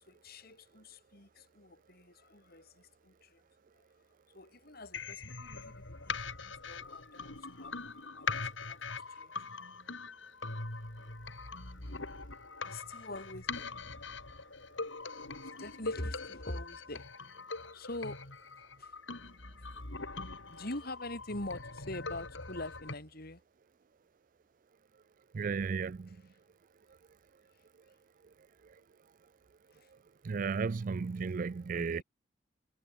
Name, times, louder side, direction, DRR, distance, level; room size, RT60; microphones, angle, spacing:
voice 1, 0.0-3.4 3.7-3.8 4.3-9.5 12.6-13.8 15.4-17.1 17.5-18.2 18.8-18.9 20.5-23.4 29.7-29.9 31.7-32.0, left 1 dB, 55° left, 5.0 m, -45 dB
sound 1, 4.9-22.9, left 4 dB, 85° left, 4.2 m, -42 dB
voice 2, 25.3-26.2 30.2-32.0, right 5 dB, 45° right, 0.4 m, -34 dB
head